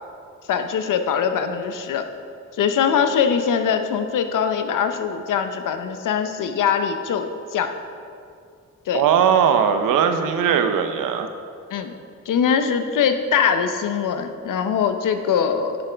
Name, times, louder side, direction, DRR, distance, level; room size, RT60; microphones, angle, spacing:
voice 1, 0.5-2.0 2.5-7.7 8.9-9.0 11.7-11.9 12.3-15.8, left 7 dB, 80° left, 8 dB, 0.7 m, -22 dB
voice 2, 8.9-11.3, right 7 dB, 90° right, 8 dB, 0.6 m, -19 dB
9.3 x 7.0 x 3.4 m, 2.3 s
cardioid pair, 55°, 31 cm